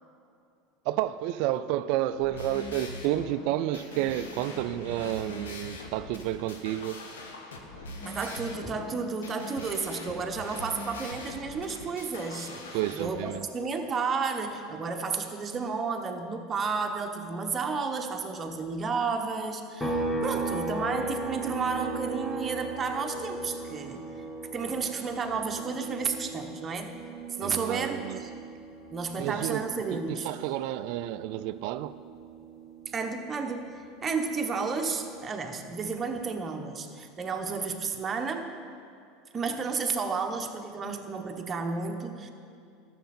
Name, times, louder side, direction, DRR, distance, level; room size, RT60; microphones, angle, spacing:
voice 1, 0.9-7.0 12.7-13.5 27.4-28.2 29.2-29.6 29.9-31.9, right 13 dB, 65° right, 0.3 m, -30 dB
sound 1, 2.1-13.1, left 1 dB, 85° left, 1.1 m, -42 dB
voice 2, 8.0-24.1 24.5-27.0 27.3-28.3 28.9-30.3 32.9-33.7 34.0-38.5 39.3-42.3, right 4 dB, 30° right, 1.1 m, -32 dB
sound 2, 19.8-33.3 33.7-35.9, right 3 dB, 15° left, 1.5 m, -37 dB
13.5 x 6.8 x 4.3 m
hypercardioid pair, 85°, 0 cm